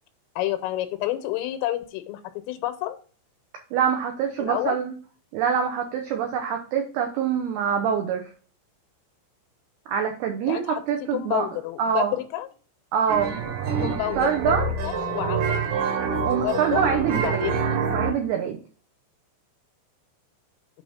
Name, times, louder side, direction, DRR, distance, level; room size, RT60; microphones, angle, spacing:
voice 1, 0.4-2.2 2.5-3.0 4.4-4.8 10.5-10.8 11.1-12.5 13.8-14.6 14.8-15.7 16.4-16.9 17.2-17.6, left 14 dB, 85° left, 10 dB, 3.4 m, -29 dB
voice 2, 3.7-4.9 5.3-8.3 9.9-11.5 11.8-12.2 12.9-14.7 16.3-17.5 17.9-18.6, right 8 dB, 85° right, 4 dB, 2.2 m, -25 dB
sound 1, 13.1-18.1, right 5 dB, 65° right, 2.9 m, -26 dB
8.9 x 3.5 x 5.5 m, 0.40 s
omnidirectional pair, 5.7 m